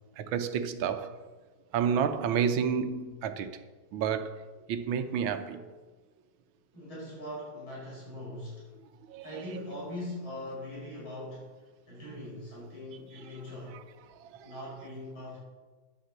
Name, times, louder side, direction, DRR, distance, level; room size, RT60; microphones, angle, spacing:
voice 1, 0.2-1.1 1.7-3.6 3.9-5.8 9.1-9.2 14.4-14.5, right 7 dB, 90° right, 1.6 m, -30 dB
voice 2, 6.7-8.7 9.2-11.5 11.9-13.8 14.4-15.4, left 1 dB, 85° left, 5.8 m, -41 dB
11.0 x 8.0 x 7.3 m
omnidirectional pair, 2.2 m